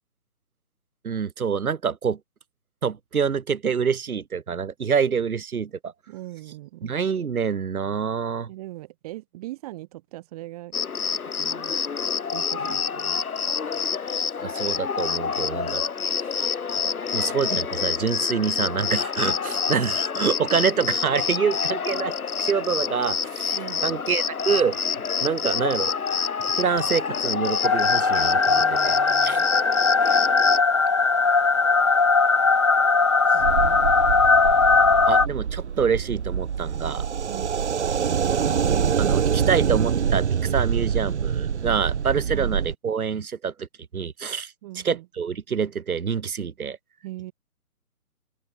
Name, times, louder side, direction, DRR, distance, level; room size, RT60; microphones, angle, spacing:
voice 1, 1.0-2.2 2.8-5.9 6.8-8.5 12.6-12.8 14.4-15.8 16.8-23.5 23.8-24.8 25.2-25.9 26.6-28.9 29.2-29.4 35.1-37.0 38.2-43.7 43.9-44.5 44.8-46.8, right 6 dB, 70° right, 1.6 m, -26 dB
voice 2, 6.1-6.9 8.5-10.8 11.4-11.7 12.3-13.3 23.5-23.9 28.6-29.5 33.3-33.8 37.3-37.5 42.3-42.5 44.6-45.1 47.0-47.3, right 17 dB, 25° right, 7.1 m, -40 dB
Cricket, 10.7-30.6, left 6 dB, 70° left, 2.1 m, -27 dB
sound 1, 27.6-35.3, left 4 dB, 20° left, 0.7 m, -19 dB
sound 2, 33.4-42.7, right 7 dB, 50° right, 1.9 m, -25 dB
hypercardioid pair, 155°, 45 cm